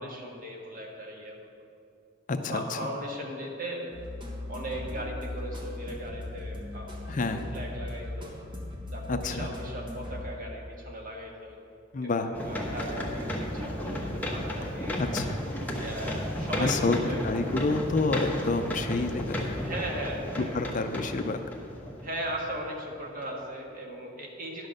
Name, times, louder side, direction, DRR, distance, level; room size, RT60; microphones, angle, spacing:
voice 1, 0.0-1.4 2.5-3.9 4.5-8.4 8.9-11.6 12.0-15.0 15.8-17.2 19.6-20.6 22.0-24.7, right 1 dB, 45° right, 0 dB, 1.5 m, -38 dB
voice 2, 2.3-2.9 7.1-7.4 9.1-9.5 11.9-12.3 15.0-15.4 16.6-17.0 17.2-19.6 20.5-21.4, left 3 dB, 40° left, 7 dB, 0.5 m, -28 dB
sound 1, 3.9-10.7, left 1 dB, 25° right, 1.3 m, -38 dB
sound 2, 12.3-22.7 23.2-23.3, equal, 10° left, 1.0 m, -34 dB
11.0 x 6.3 x 6.5 m, 2.6 s
head